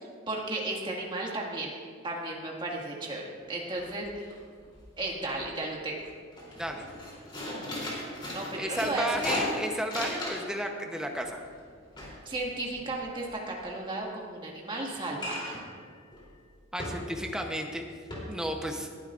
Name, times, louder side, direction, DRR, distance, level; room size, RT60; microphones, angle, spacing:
voice 1, 0.3-1.7 2.0-3.2 3.5-4.4 5.0-6.1 8.3-9.3 12.2-15.6, right 2 dB, 25° right, -2 dB, 1.8 m, -34 dB
sound 1, 3.4-3.5 3.8-4.3 4.6-5.4 5.8-6.0 6.3-10.6 10.9-13.3 15.2-15.7 16.1-16.3 16.8-17.3 17.7-17.8 18.1-18.2, left 1 dB, 25° left, 3.1 m, -37 dB
voice 2, 8.6-11.4 16.7-17.8 18.3-18.9, equal, 5° right, 2 dB, 0.8 m, -33 dB
19.5 x 11.5 x 2.5 m, 2.1 s
head